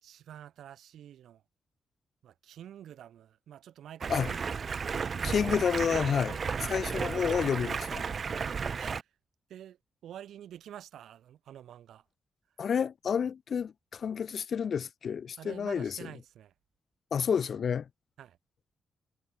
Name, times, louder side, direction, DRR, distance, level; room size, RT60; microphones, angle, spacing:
voice 1, 0.0-1.4 2.2-4.5 8.7-9.0 9.5-9.8 10.0-12.0 15.4-16.5 18.2-18.4, right 10 dB, 85° right, 4.4 m, -48 dB
Stream, 4.0-9.0, right 5 dB, 40° right, 0.8 m, -33 dB
voice 2, 5.2-8.0 12.6-16.0 17.1-17.9, left 7 dB, 50° left, 0.4 m, -30 dB
wide cardioid pair, 155°, 0 cm